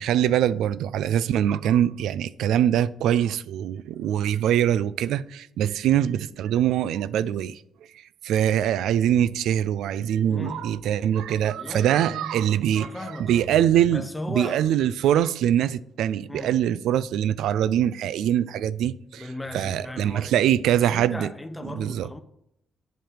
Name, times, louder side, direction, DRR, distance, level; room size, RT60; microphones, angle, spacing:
voice 1, 0.0-7.6 7.9-19.3 19.5-21.3 21.7-22.1, right 10 dB, 80° right, 0.3 m, -23 dB
voice 2, 10.3-10.7 11.5-12.4 12.7-13.5 13.9-14.6 16.3-16.6 19.1-22.2, left 1 dB, 15° left, 0.8 m, -37 dB
7.7 x 5.1 x 7.3 m
cardioid pair, 90°, 0 cm